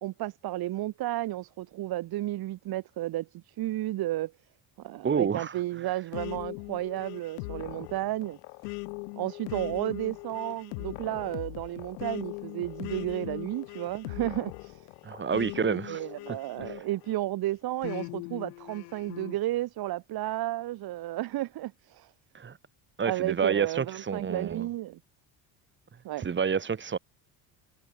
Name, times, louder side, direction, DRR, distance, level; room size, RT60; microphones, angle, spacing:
voice 1, 0.0-4.3 4.8-8.4 9.2-14.9 15.6-22.1 23.0-25.0 26.0-26.3, right 15 dB, 60° right, 1.5 m, -33 dB
voice 2, 5.0-5.9 15.0-16.1 16.6-16.8 22.3-22.6 23.0-24.7 26.2-27.0, right 6 dB, 25° right, 1.6 m, -29 dB
sound 1, 6.1-17.2 17.8-19.4, left 34 dB, 85° left, 7.7 m, -40 dB
supercardioid pair, 90°, 43 cm